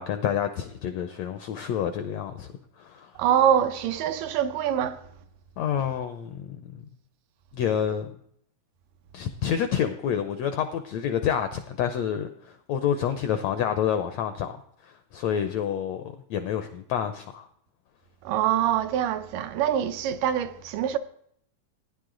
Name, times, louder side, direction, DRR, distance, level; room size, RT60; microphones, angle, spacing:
voice 1, 0.0-2.5 2.8-3.1 5.6-6.8 7.5-8.1 9.1-14.6 14.8-17.5, left 8 dB, 80° left, 1.5 m, -28 dB
voice 2, 3.2-5.0 18.2-21.0, right 10 dB, 80° right, 2.3 m, -24 dB
16.5 x 10.0 x 3.8 m
omnidirectional pair, 3.9 m